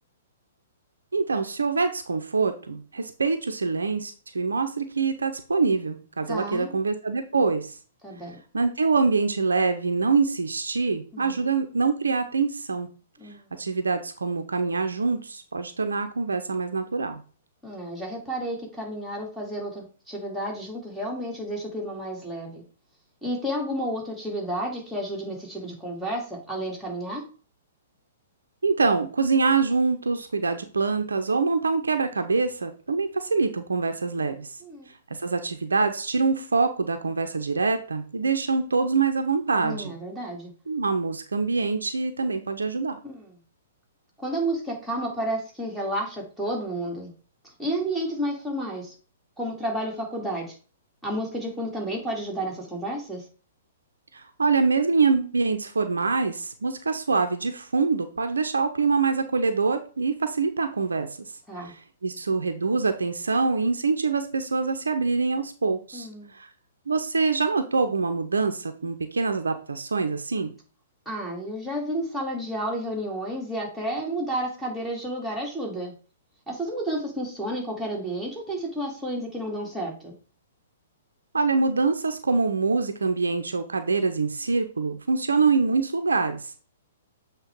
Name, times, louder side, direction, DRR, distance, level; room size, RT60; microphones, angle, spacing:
voice 1, 1.1-7.8 8.5-12.9 13.6-17.2 28.6-34.6 35.2-39.9 40.7-43.0 54.1-61.3 61.6-66.5 66.9-70.5 81.3-86.5, right 4 dB, 70° right, 7 dB, 0.7 m, -25 dB
voice 2, 6.3-6.7 8.0-8.4 11.1-11.4 13.2-13.6 17.6-22.6 23.2-27.2 34.6-34.9 39.6-40.5 43.0-43.3 44.2-47.1 47.6-48.9 49.4-50.5 51.0-53.3 61.5-61.7 65.9-66.3 71.1-75.9 76.5-80.1, right 1 dB, ahead, -4 dB, 2.3 m, -31 dB
7.6 x 3.2 x 4.6 m, 0.38 s
figure-of-eight pair, 115°, 0 cm